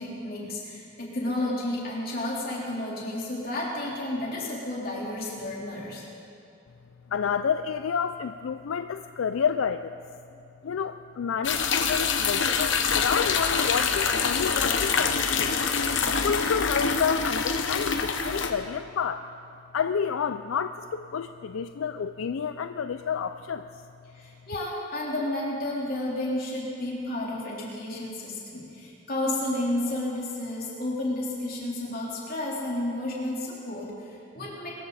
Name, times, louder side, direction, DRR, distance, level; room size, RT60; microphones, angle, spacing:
voice 1, 0.0-6.0 24.1-34.7, left 1 dB, 45° left, -5 dB, 3.8 m, -31 dB
voice 2, 7.1-9.9 10.6-15.5 16.2-19.2 19.7-23.7, left 6 dB, 80° left, 9 dB, 0.4 m, -29 dB
sound 1, 11.4-18.5, left 5 dB, 65° left, 1.0 m, -25 dB
24.0 x 14.0 x 4.2 m, 2.5 s
head